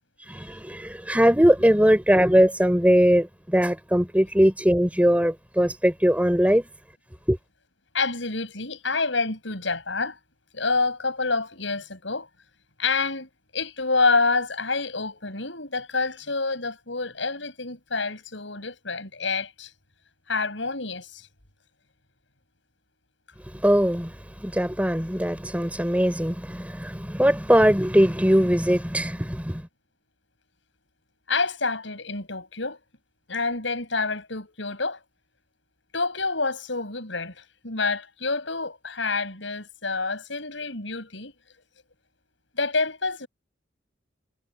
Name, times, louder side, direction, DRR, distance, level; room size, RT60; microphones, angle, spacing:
voice 1, 0.3-6.6 7.3-7.4 23.5-29.7, equal, 5° right, 4.5 m, -21 dB
voice 2, 7.9-10.2 10.5-12.3 12.8-19.7 20.3-21.3 31.3-32.8 33.3-35.0 35.9-41.3 42.6-43.3, left 3 dB, 70° left, 7.7 m, -27 dB
head